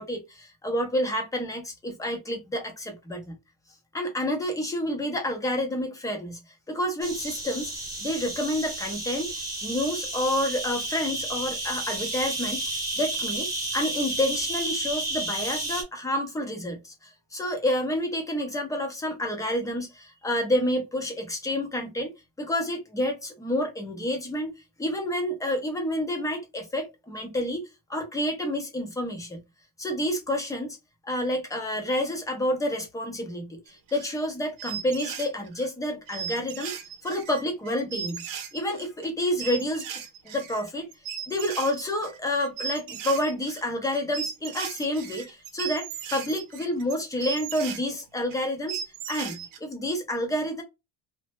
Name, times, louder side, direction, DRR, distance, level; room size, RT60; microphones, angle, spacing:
voice 1, 0.0-3.4 3.9-6.4 6.7-7.7 8.0-9.3 9.6-24.5 24.8-27.6 27.9-29.4 29.8-30.8 31.0-38.2 38.5-39.9 40.2-40.9 41.3-48.8 49.1-50.6, left 1 dB, 10° left, 0.4 m, -29 dB
sound 1, 7.0-15.8, right 2 dB, 10° right, 0.9 m, -32 dB
sound 2, 33.7-34.3 34.6-35.7 36.1-47.8 48.3-48.4 48.7-49.6, right 8 dB, 50° right, 0.7 m, -37 dB
3.1 x 2.0 x 2.9 m
cardioid pair, 175°, 45 cm